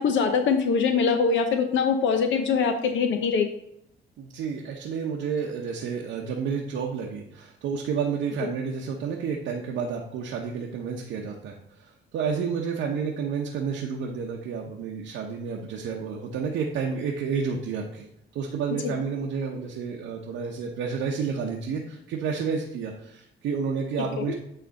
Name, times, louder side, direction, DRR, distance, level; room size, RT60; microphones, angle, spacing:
voice 1, 0.0-3.5 18.8-18.9 24.2-24.3, left 5 dB, 75° left, 7 dB, 0.7 m, -23 dB
voice 2, 4.2-18.1 18.3-24.3, right 6 dB, 85° right, -1 dB, 0.9 m, -30 dB
8.9 x 3.3 x 4.0 m, 0.75 s
cardioid pair, 90°, 20 cm